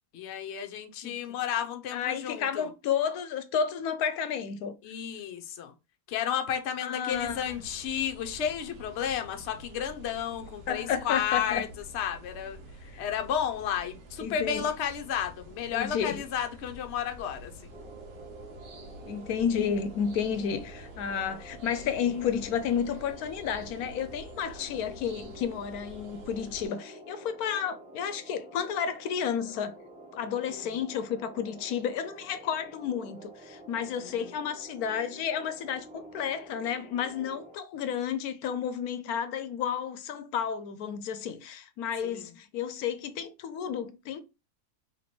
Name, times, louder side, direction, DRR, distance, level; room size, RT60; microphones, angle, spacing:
voice 1, 0.1-2.7 4.8-5.7 6.1-11.7 11.9-12.6 13.0-17.5 30.5-30.7 34.0-34.3 42.0-42.2, left 9 dB, 60° left, 0.8 m, -32 dB
voice 2, 1.0-1.4 1.9-4.7 6.8-7.4 10.7-11.6 12.8-13.1 14.2-14.7 15.7-16.2 19.1-29.7 30.1-44.2, left 7 dB, 80° left, 1.1 m, -31 dB
sound 1, 7.1-26.7, right 1 dB, 90° right, 1.5 m, -48 dB
sound 2, 17.7-37.6, right 1 dB, 5° right, 0.7 m, -49 dB
3.2 x 2.9 x 4.2 m
omnidirectional pair, 1.6 m